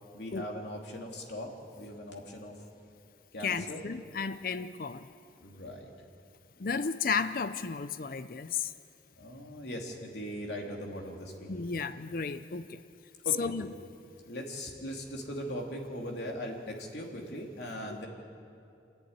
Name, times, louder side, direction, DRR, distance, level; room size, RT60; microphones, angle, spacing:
voice 1, 0.1-2.7 3.3-3.8 5.4-5.9 9.2-11.5 13.2-13.5 14.2-18.1, equal, 75° left, 0 dB, 3.0 m, -40 dB
voice 2, 3.4-5.1 6.6-8.7 11.5-12.8 13.4-13.7, left 5 dB, 50° left, 12 dB, 0.5 m, -33 dB
27.0 x 11.0 x 9.6 m, 2.5 s
head